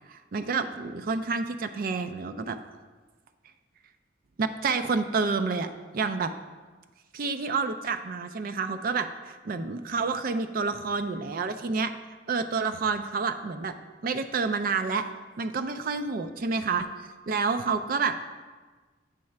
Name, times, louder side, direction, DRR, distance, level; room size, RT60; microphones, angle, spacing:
voice 1, 0.1-2.6 4.4-5.7 5.9-6.3 7.1-11.9 12.3-13.7 14.0-15.0 15.4-16.9 17.3-18.1, right 4 dB, 50° right, 9 dB, 0.4 m, -29 dB
7.6 x 3.2 x 5.7 m, 1.3 s
head